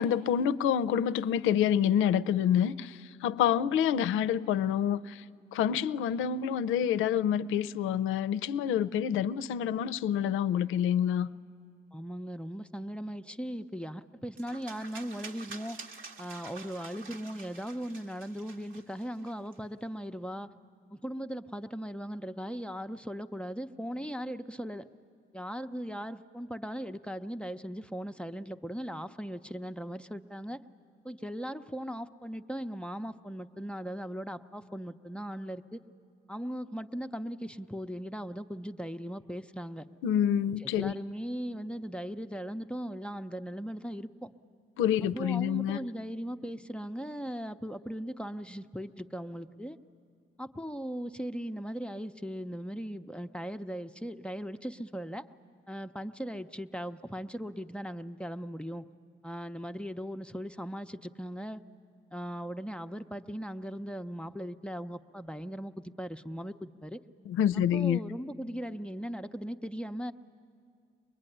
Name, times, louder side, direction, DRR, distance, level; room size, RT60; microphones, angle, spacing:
voice 1, 0.0-5.2 5.5-11.3 40.0-40.9 44.8-45.8 67.3-68.0, left 9 dB, 90° left, 0.5 m, -27 dB
voice 2, 11.9-15.8 16.2-20.5 20.9-24.9 25.3-30.6 31.0-35.8 36.3-39.9 40.6-44.3 45.1-49.8 50.4-55.3 55.7-58.8 59.2-61.6 62.1-67.0 67.5-70.1, equal, 5° left, 0.6 m, -38 dB
sound 1, 14.4-19.6, right 4 dB, 80° right, 1.6 m, -48 dB
24.0 x 21.5 x 10.0 m
cardioid pair, 90°, 20 cm